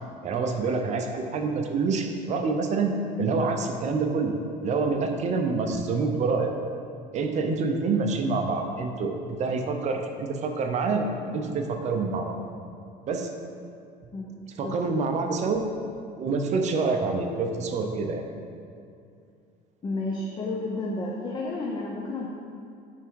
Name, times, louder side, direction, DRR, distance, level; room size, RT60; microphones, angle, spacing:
voice 1, 0.2-4.4 4.6-6.5 7.1-12.4 13.1-13.3 14.6-15.6 16.2-18.2, right 4 dB, 40° right, 4 dB, 0.7 m, -27 dB
voice 2, 19.8-22.3, left 2 dB, 25° left, -2 dB, 0.7 m, -31 dB
9.5 x 3.6 x 4.7 m, 2.5 s
cardioid pair, 145°, 17 cm